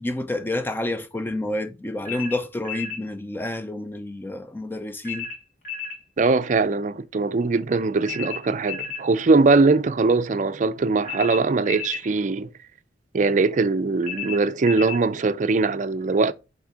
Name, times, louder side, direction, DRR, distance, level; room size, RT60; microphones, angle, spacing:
voice 1, 0.0-5.3, left 1 dB, 10° left, 0.5 m, -29 dB
sound 1, 2.1-3.0 5.0-6.0 8.0-9.1 11.0-12.1 14.0-15.0, left 6 dB, 45° left, 2.4 m, -33 dB
voice 2, 6.2-12.5 13.1-16.3, right 3 dB, 45° right, 0.4 m, -21 dB
6.1 x 3.6 x 4.9 m
head